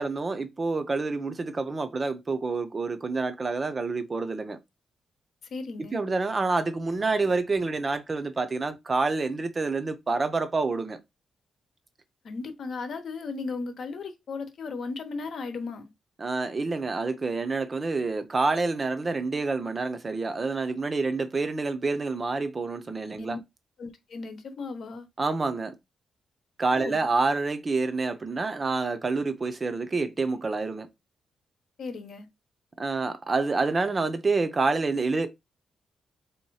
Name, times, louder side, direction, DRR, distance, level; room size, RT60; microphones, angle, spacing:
voice 1, 0.0-4.6 5.9-11.0 16.2-23.4 25.2-25.7 26.6-30.9 32.8-35.3, right 3 dB, 30° right, 0.6 m, -28 dB
voice 2, 5.5-6.0 12.2-15.9 23.2-23.4 23.8-25.1 26.7-27.1 31.8-32.3, left 4 dB, 60° left, 0.9 m, -36 dB
3.5 x 2.8 x 4.7 m
wide cardioid pair, 135°, 0 cm